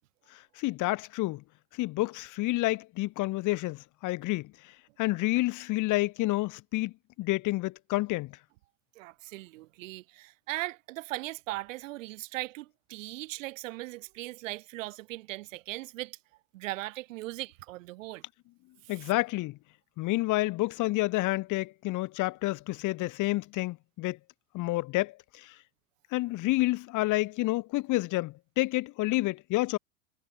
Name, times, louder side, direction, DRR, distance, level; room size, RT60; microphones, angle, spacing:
voice 1, 0.3-1.4 1.7-4.5 5.0-6.9 7.2-8.3 18.9-19.6 20.0-24.2 24.5-25.5 26.1-29.8, left 19 dB, 45° left, 6.0 m, -29 dB
voice 2, 9.0-16.2 16.5-18.2 18.8-19.1, right 19 dB, 60° right, 7.8 m, -39 dB
figure-of-eight pair, 90°, 44 cm